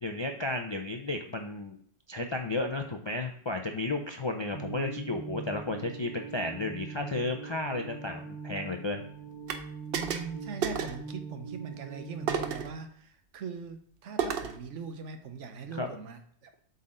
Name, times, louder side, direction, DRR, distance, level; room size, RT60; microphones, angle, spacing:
voice 1, 0.0-1.8 2.1-9.0 15.7-15.9, left 2 dB, 50° left, 4 dB, 0.3 m, -33 dB
sound 1, 4.5-12.7, right 5 dB, 30° right, 1.8 m, -42 dB
sound 2, 9.5-9.6 9.9-10.3 10.6-11.0 12.3-12.7 14.2-14.6, right 7 dB, 60° right, 0.8 m, -31 dB
voice 2, 9.9-16.6, right 6 dB, 75° right, 7 dB, 1.1 m, -41 dB
8.0 x 4.1 x 3.8 m, 0.62 s
omnidirectional pair, 1.2 m